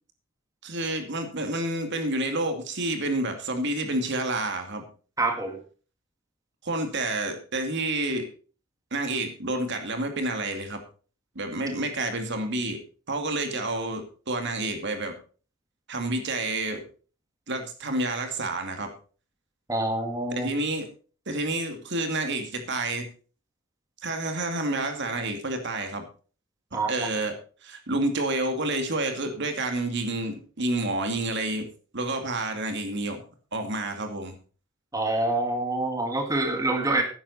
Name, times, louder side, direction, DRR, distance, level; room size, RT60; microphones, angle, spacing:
voice 1, 0.6-4.9 6.6-8.3 8.9-10.8 11.4-12.8 13.1-15.1 15.9-16.9 17.5-18.9 20.3-20.9 21.3-23.1 24.0-26.0 26.7-27.3 27.6-31.7 31.9-33.2 33.5-34.3, right 2 dB, 60° right, 6 dB, 2.4 m, -29 dB
voice 2, 5.2-5.6 19.7-20.5 26.7-26.9 34.9-37.0, right 2 dB, 15° right, 4 dB, 2.0 m, -26 dB
13.5 x 10.5 x 4.2 m, 0.38 s
head